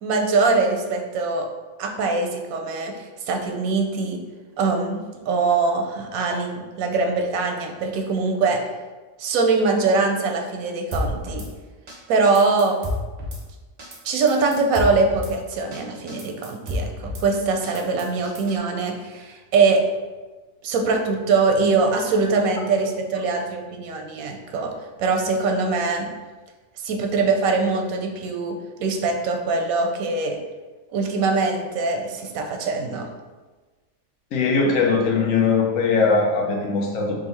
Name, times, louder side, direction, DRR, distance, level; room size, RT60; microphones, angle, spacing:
voice 1, 0.0-1.5 1.8-4.2 4.6-8.6 9.2-11.5 12.1-12.8 14.0-19.8 20.6-24.7 25.0-26.1 26.8-30.4 30.9-33.1, right 4 dB, 90° right, 3 dB, 1.0 m, -22 dB
Drum kit / Snare drum, 10.9-11.5 11.9-12.0 12.2-13.4 13.8-14.0 14.3-15.3 15.7-15.8 16.1-17.2 17.6-18.6, left 1 dB, 45° right, 0.6 m, -30 dB
voice 2, 34.3-37.1, left 4 dB, 75° left, 0 dB, 1.1 m, -20 dB
3.7 x 2.6 x 4.0 m, 1.3 s
omnidirectional pair, 1.4 m